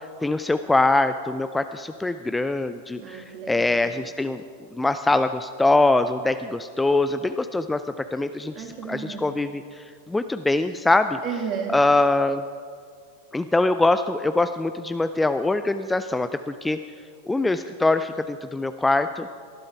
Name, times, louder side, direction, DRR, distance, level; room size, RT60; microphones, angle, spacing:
voice 1, 0.2-3.0 3.5-4.4 4.8-6.3 6.8-7.8 8.1-8.5 8.9-9.5 10.1-11.1 11.7-12.4 13.3-16.3 16.6-16.8 17.3-18.1 18.5-19.2, left 2 dB, 10° left, 10 dB, 0.4 m, -22 dB
voice 2, 3.0-3.9 8.5-9.3 11.2-11.8, right 7 dB, 35° right, 3 dB, 2.4 m, -33 dB
19.5 x 11.5 x 4.6 m, 2.1 s
figure-of-eight pair, 90°, 0 cm